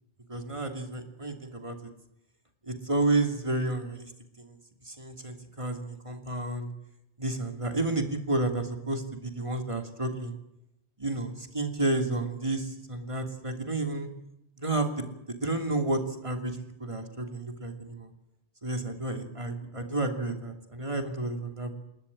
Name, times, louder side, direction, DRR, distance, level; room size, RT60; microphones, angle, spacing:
voice 1, 0.3-1.8 2.6-4.1 4.4-4.6 4.8-6.7 7.2-10.4 11.0-14.1 14.6-18.1 18.6-21.7, right 2 dB, 25° right, 5 dB, 2.8 m, -31 dB
28.5 x 13.0 x 9.9 m, 0.86 s
omnidirectional pair, 1.2 m